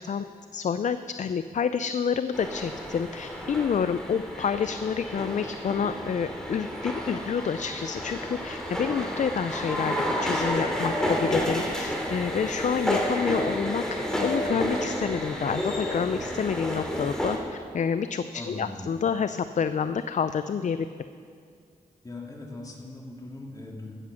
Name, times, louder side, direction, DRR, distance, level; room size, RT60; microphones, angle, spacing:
voice 1, 0.5-10.0 10.2-13.8 14.2-17.4 17.7-20.8, left 7 dB, 55° left, 11 dB, 0.4 m, -28 dB
sound 1, 2.3-17.4, equal, 5° left, 2.4 m, -30 dB
voice 2, 18.3-18.8 22.0-23.9, left 2 dB, 25° left, -1 dB, 2.4 m, -40 dB
14.5 x 7.6 x 6.2 m, 2.3 s
cardioid pair, 70°, 15 cm